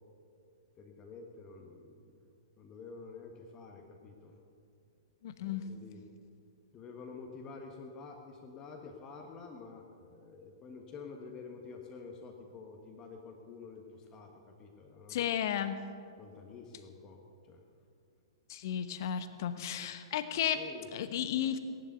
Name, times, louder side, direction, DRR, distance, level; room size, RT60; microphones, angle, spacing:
voice 1, 0.8-2.3 2.6-4.4 5.4-6.0 6.7-15.3 16.2-17.2 17.5-17.6 20.5-21.1, left 4 dB, 25° left, 2 dB, 1.6 m, -49 dB
voice 2, 5.2-5.6 15.1-15.8 18.5-20.6 20.9-21.6, left 9 dB, 45° left, 10 dB, 1.1 m, -33 dB
17.5 x 11.0 x 6.9 m, 2.4 s
figure-of-eight pair, 110°, 3 cm